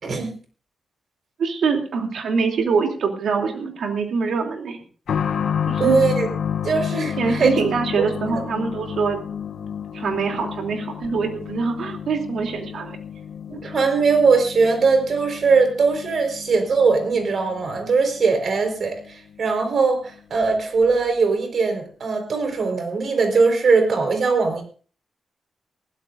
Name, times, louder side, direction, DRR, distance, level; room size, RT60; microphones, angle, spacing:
voice 1, 1.4-4.8 5.7-6.0 7.2-9.2 9.9-13.0, right 5 dB, 75° right, 3 dB, 3.0 m, -24 dB
sound 1, 5.1-19.5 19.8-19.9 20.8-20.9, left 8 dB, 80° left, 0.8 m, -31 dB
voice 2, 5.8-6.3 6.6-7.5 8.3-8.4 13.5-24.6, right 4 dB, 50° right, 5 dB, 4.5 m, -20 dB
21.0 x 15.5 x 2.6 m, 0.41 s
wide cardioid pair, 155°, 0 cm